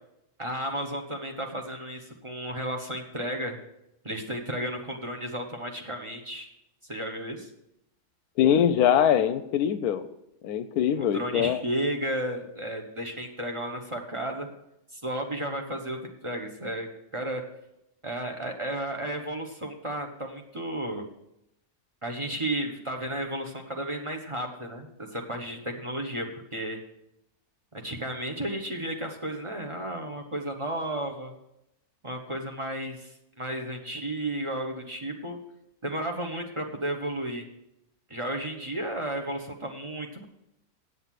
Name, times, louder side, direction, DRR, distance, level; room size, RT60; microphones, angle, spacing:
voice 1, 0.4-3.6 4.0-6.5 6.9-7.5 10.9-14.5 14.9-16.9 17.1-17.4 18.0-21.0 22.0-26.8 27.8-31.3 32.0-33.1 33.4-35.4 35.8-37.4 38.1-40.2, right 1 dB, 20° right, 3 dB, 1.0 m, -33 dB
voice 2, 8.4-10.0 10.4-11.6, left 9 dB, 75° left, 12 dB, 1.1 m, -23 dB
8.1 x 7.9 x 7.5 m, 0.83 s
omnidirectional pair, 1.7 m